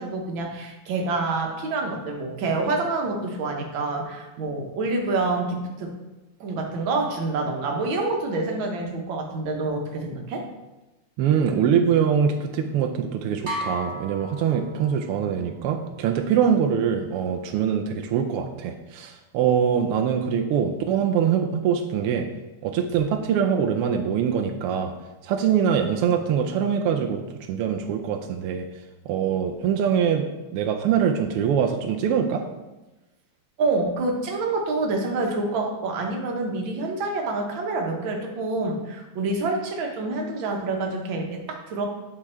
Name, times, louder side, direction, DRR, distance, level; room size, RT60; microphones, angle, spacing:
voice 1, 0.0-5.9 6.4-10.4 33.6-41.9, right 3 dB, 65° right, 1 dB, 1.8 m, -27 dB
voice 2, 11.2-22.3 22.6-24.9 25.2-28.7 29.1-30.3 30.5-32.4, right 8 dB, 90° right, 4 dB, 1.6 m, -23 dB
sound 1, 13.5-15.2, equal, 45° right, 0.6 m, -34 dB
8.9 x 4.7 x 4.3 m, 1.1 s
omnidirectional pair, 2.4 m